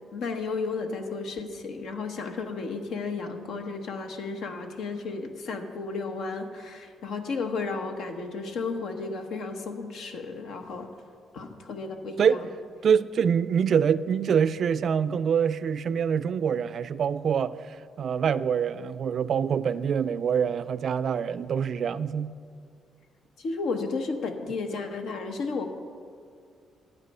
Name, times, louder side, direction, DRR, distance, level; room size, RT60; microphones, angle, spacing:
voice 1, 0.1-10.9 11.3-12.4 23.4-25.7, left 4 dB, 75° left, 1.0 m, -33 dB
voice 2, 12.8-17.5 18.0-22.3, right 7 dB, 60° right, 0.3 m, -25 dB
11.5 x 8.2 x 5.4 m
cardioid pair, 90°, 0 cm